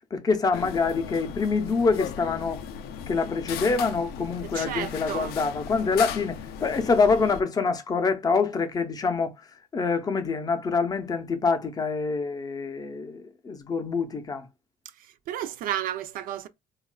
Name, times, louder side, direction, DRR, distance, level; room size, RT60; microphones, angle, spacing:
voice 1, 0.1-2.6 3.1-9.3 9.7-14.5, left 4 dB, 25° left, 0.5 m, -26 dB
sound 1, 0.5-7.4, left 8 dB, 75° left, 0.4 m, -37 dB
voice 2, 4.5-5.3 15.3-16.5, right 11 dB, 60° right, 0.4 m, -32 dB
3.9 x 2.3 x 2.2 m
cardioid pair, 145°, 16 cm